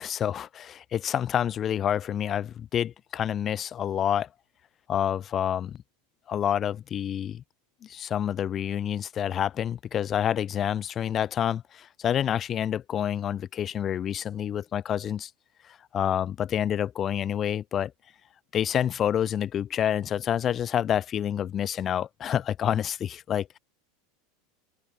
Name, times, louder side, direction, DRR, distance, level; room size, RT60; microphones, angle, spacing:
voice 1, 0.0-4.3 4.9-5.8 6.3-7.4 7.8-15.3 15.9-17.9 18.5-23.6, left 9 dB, 25° left, 0.7 m, -28 dB
open air
supercardioid pair, 155°, 0 cm